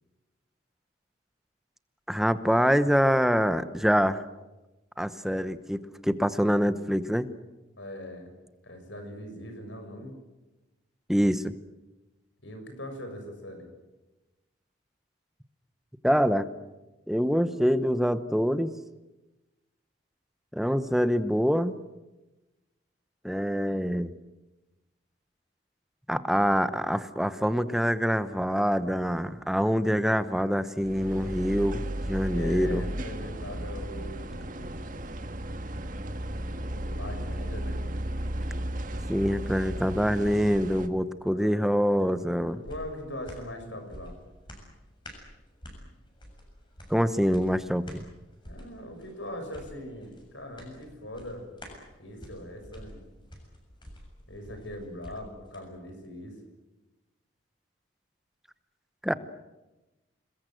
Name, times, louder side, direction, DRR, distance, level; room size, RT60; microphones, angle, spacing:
voice 1, 2.1-4.2 5.0-7.3 11.1-11.5 16.0-16.5 17.1-18.7 20.5-21.8 23.2-24.1 26.1-32.8 39.1-42.6 46.9-48.0 59.0-59.1, equal, ahead, 12 dB, 0.9 m, -25 dB
voice 2, 7.8-8.3 8.6-10.2 12.4-13.7 32.3-34.9 36.7-37.9 41.2-41.7 42.6-44.1 48.4-51.5 52.0-53.0 54.3-56.4 59.1-59.2, left 1 dB, 75° left, 5 dB, 7.2 m, -41 dB
sound 1, 30.8-40.9, right 1 dB, 45° right, 1.6 m, -34 dB
sound 2, 42.0-55.6 56.0-56.1, equal, 25° left, 6.9 m, -49 dB
28.0 x 21.0 x 7.9 m, 1.1 s
head